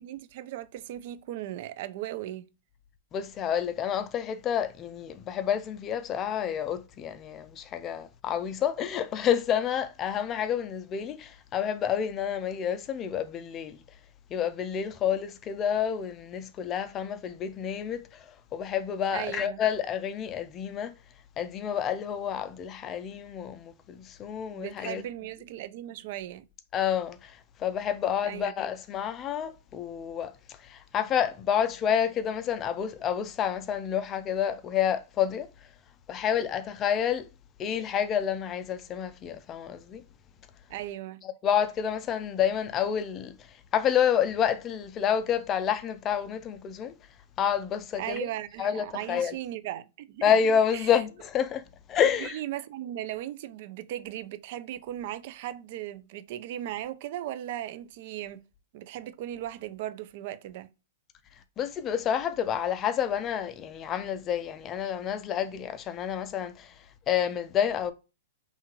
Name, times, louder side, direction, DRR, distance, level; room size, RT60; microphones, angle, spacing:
voice 1, 0.0-2.4 19.1-19.6 24.5-26.4 28.2-28.5 40.7-41.2 48.0-50.3 50.7-50.9 52.0-58.4 58.7-60.7, right 12 dB, 55° right, 0.3 m, -37 dB
voice 2, 3.1-13.8 14.3-20.9 21.4-25.0 26.7-30.3 30.6-35.5 36.1-37.3 37.6-40.0 41.4-43.4 43.7-46.9 47.4-48.3 48.6-49.3 50.2-51.6 51.9-52.4 61.6-66.7 67.1-67.9, left 8 dB, 25° left, 0.4 m, -29 dB
2.7 x 2.3 x 2.9 m
hypercardioid pair, 130°, 0 cm